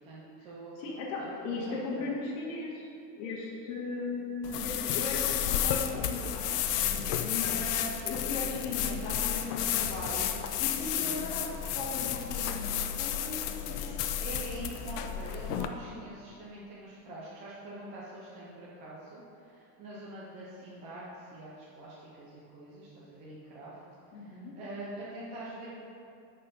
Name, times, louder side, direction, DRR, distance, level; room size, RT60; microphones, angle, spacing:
voice 1, 0.0-0.7 1.2-2.1 6.8-7.3 10.9-11.1 14.2-23.8 24.2-25.7, right 1 dB, 15° right, -7 dB, 0.3 m, -45 dB
voice 2, 0.8-2.9 3.2-6.5 7.2-10.3 10.6-11.5 11.7-14.0 24.1-24.5, left 3 dB, 55° left, -6 dB, 2.0 m, -37 dB
sound 1, 4.4-15.7, left 10 dB, 70° left, 0.8 m, -32 dB
11.5 x 4.4 x 5.0 m, 2.6 s
supercardioid pair, 170°, 49 cm